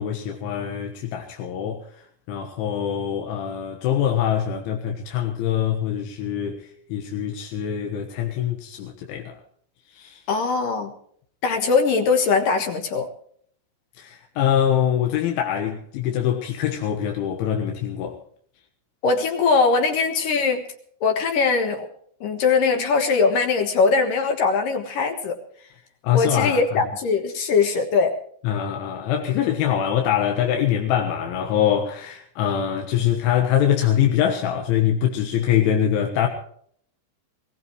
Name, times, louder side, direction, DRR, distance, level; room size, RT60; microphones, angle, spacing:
voice 1, 0.0-1.8 2.3-6.6 6.9-9.4 9.9-10.2 14.0-18.2 26.0-26.8 28.5-36.3, left 9 dB, 90° left, 3.9 m, -23 dB
voice 2, 10.3-10.9 11.4-13.1 19.0-20.6 21.0-21.9 22.2-25.4 26.1-28.1, left 4 dB, 60° left, 2.5 m, -21 dB
21.5 x 18.0 x 3.1 m
omnidirectional pair, 5.3 m